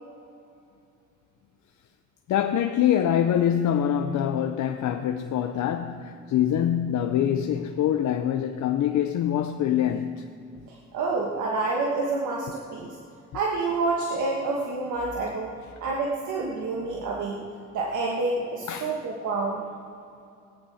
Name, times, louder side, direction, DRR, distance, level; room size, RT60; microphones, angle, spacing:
voice 1, 2.3-10.2 18.7-19.0, left 10 dB, 70° left, 0.7 m, -24 dB
voice 2, 10.7-13.0 13.3-15.5 15.8-17.4 17.7-19.7, right 3 dB, 80° right, 1.5 m, -28 dB
19.5 x 9.0 x 4.2 m
cardioid pair, 90°, 30 cm